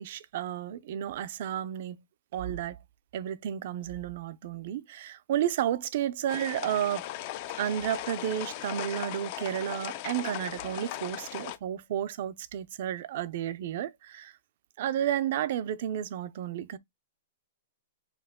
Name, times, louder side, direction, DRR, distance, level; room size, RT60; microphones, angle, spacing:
voice 1, 0.0-2.0 2.3-2.8 3.1-7.1 7.6-14.3 14.8-16.8, right 10 dB, 55° right, 0.5 m, -32 dB
sound 1, 6.3-11.6, left 14 dB, 40° left, 0.5 m, -38 dB
4.7 x 2.8 x 3.5 m
hypercardioid pair, 160°, 0 cm